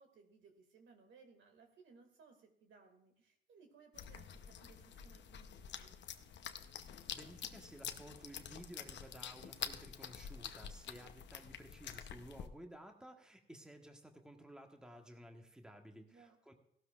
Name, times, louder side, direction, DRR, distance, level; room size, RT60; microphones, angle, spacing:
voice 1, 0.0-6.0 15.9-16.4, right 5 dB, 75° right, 5 dB, 2.2 m, -63 dB
sound 1, 3.9-12.5, left 8 dB, 65° left, 0.8 m, -48 dB
voice 2, 7.1-16.5, right 1 dB, 5° right, 3 dB, 1.3 m, -55 dB
16.5 x 12.5 x 2.4 m, 0.73 s
cardioid pair, 90°, 20 cm